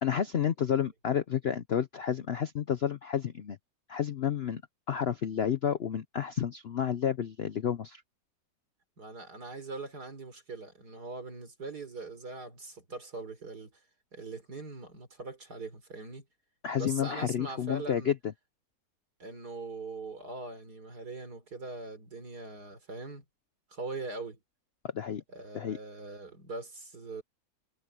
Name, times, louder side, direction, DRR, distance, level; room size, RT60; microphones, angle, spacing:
voice 1, 0.0-3.6 3.9-4.6 4.9-8.0 16.6-18.1 24.9-25.2 25.5-25.8, left 8 dB, 65° left, 0.6 m, -30 dB
voice 2, 9.0-13.7 14.1-16.2 16.7-18.1 19.2-23.2 23.7-24.4 25.3-27.2, right 3 dB, 65° right, 4.2 m, -41 dB
omnidirectional pair, 1.9 m